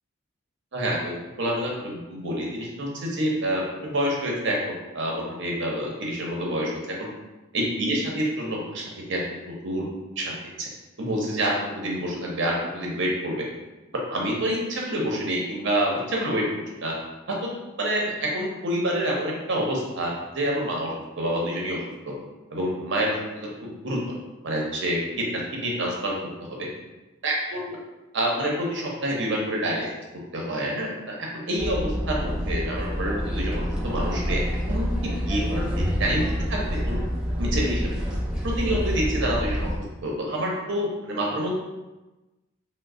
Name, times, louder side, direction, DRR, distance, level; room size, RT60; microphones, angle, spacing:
voice 1, 0.7-7.1 7.5-8.8 9.1-9.9 10.2-10.7 11.0-13.4 14.1-16.5 16.8-16.9 17.3-17.5 17.8-21.8 22.1-22.2 22.5-23.5 23.8-24.1 24.4-26.2 26.6-26.7 27.2-27.8 28.1-29.9 30.3-31.2 31.5-34.4 34.7-36.2 36.5-37.0 37.4-38.0 38.4-39.7 40.0-41.5, right 1 dB, 55° right, -2 dB, 0.7 m, -27 dB
sound 1, 31.6-39.8, equal, 5° right, 0.3 m, -27 dB
3.1 x 2.0 x 3.6 m, 1.1 s
head